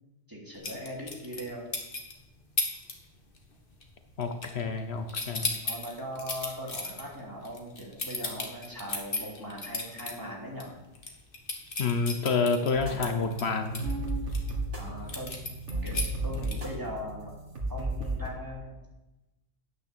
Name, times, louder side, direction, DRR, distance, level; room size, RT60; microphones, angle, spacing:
voice 1, 0.3-1.7 5.3-10.7 14.8-15.3 15.8-17.3 17.7-18.8, equal, 20° right, -3 dB, 2.9 m, -40 dB
sound 1, 0.6-2.1 2.6-2.9 3.2-3.6 3.8-4.8 5.1-10.1 10.5-10.6 11.0-14.5 15.1-16.8, left 3 dB, 50° left, 1.8 m, -34 dB
voice 2, 4.2-5.5 11.8-13.9, left 4 dB, 70° left, 7 dB, 1.1 m, -28 dB
sound 2, 12.7-18.3, right 2 dB, 90° right, 2.3 m, -34 dB
9.4 x 9.2 x 6.8 m, 1.0 s
omnidirectional pair, 1.2 m